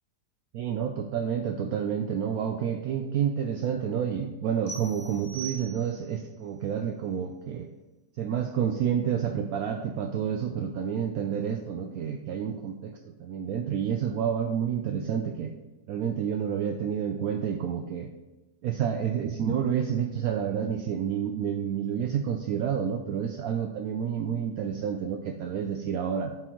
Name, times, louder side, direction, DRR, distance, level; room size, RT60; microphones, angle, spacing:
voice 1, 0.5-7.7 8.2-15.5 15.9-18.1 18.6-26.3, right 8 dB, 70° right, 4 dB, 1.0 m, -29 dB
sound 1, 4.7-6.2, right 5 dB, 90° left, 2.9 m, -41 dB
7.9 x 7.7 x 3.0 m, 1.1 s
omnidirectional pair, 1.7 m